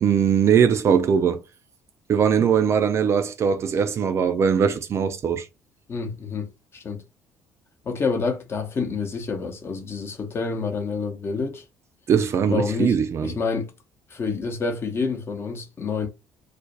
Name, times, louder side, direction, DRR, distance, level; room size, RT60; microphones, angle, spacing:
voice 1, 0.0-1.4 2.1-5.5 12.1-13.3, right 7 dB, 35° right, 0.4 m, -20 dB
voice 2, 5.9-7.0 7.8-11.6 12.5-13.7 14.1-16.1, left 4 dB, 35° left, 0.7 m, -28 dB
2.4 x 2.2 x 3.8 m
figure-of-eight pair, 50°, 8 cm